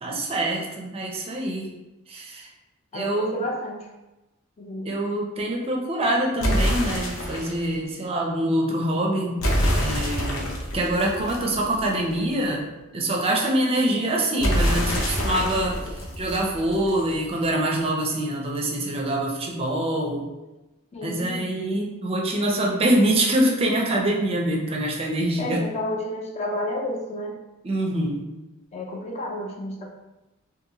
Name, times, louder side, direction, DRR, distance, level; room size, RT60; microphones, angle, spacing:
voice 1, 0.0-1.7 2.1-2.5 2.9-3.5 4.8-9.4 9.8-12.7 12.9-20.3 21.0-25.6 27.6-28.3, right 1 dB, 30° right, -1 dB, 0.4 m, -25 dB
voice 2, 2.9-3.9 4.6-4.9 20.9-21.5 25.4-27.4 28.7-29.9, left 1 dB, 30° left, 0 dB, 0.4 m, -31 dB
sound 1, 6.4-7.6 9.4-12.1 14.4-17.1, equal, 75° left, 0.6 m, -26 dB
2.7 x 2.5 x 2.8 m, 1.0 s
head